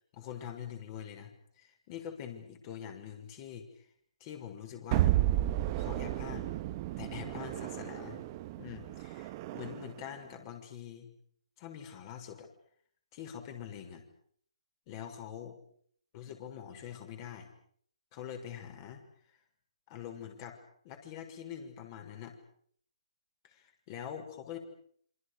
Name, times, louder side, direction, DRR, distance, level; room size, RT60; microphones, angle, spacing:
voice 1, 0.1-3.9 4.2-5.1 5.8-6.6 7.0-8.2 8.6-11.1 11.6-12.5 13.1-14.0 14.9-15.6 16.1-17.5 18.1-19.0 19.9-20.6 20.8-22.3 23.4-24.6, left 9 dB, 35° left, 5 dB, 6.3 m, -44 dB
sound 1, 4.9-10.0, right 14 dB, 30° right, 1.4 m, -32 dB
27.5 x 26.5 x 6.9 m, 0.62 s
hypercardioid pair, 140°, 4 cm